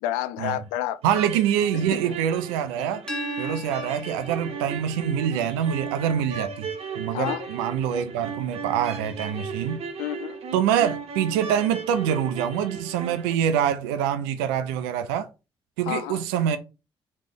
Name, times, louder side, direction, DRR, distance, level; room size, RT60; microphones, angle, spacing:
voice 1, 0.0-1.0 1.7-2.1 7.1-7.5 10.0-10.4 15.9-16.2, left 13 dB, 75° left, 0.4 m, -30 dB
sound 1, 1.0-13.3, right 6 dB, 50° right, 0.8 m, -36 dB
voice 2, 1.0-3.0 3.4-6.7 7.0-9.8 10.5-15.3 15.8-16.6, right 9 dB, 75° right, 0.4 m, -25 dB
sound 2, 3.1-8.8, left 4 dB, 5° left, 0.9 m, -42 dB
3.2 x 2.9 x 3.5 m
figure-of-eight pair, 40°, 13 cm